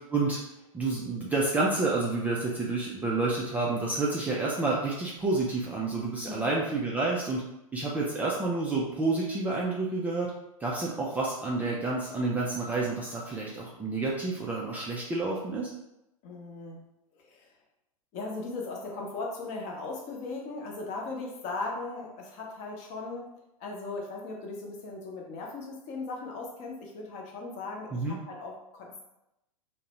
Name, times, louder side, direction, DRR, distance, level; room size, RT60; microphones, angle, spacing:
voice 1, 0.7-7.4 7.7-10.3 10.6-15.7 27.9-28.2, right 3 dB, 10° right, -5 dB, 0.3 m, -29 dB
voice 2, 16.2-17.5 18.1-29.0, left 3 dB, 40° left, 0 dB, 0.7 m, -38 dB
2.5 x 2.1 x 2.9 m, 0.87 s
hypercardioid pair, 100°, 19 cm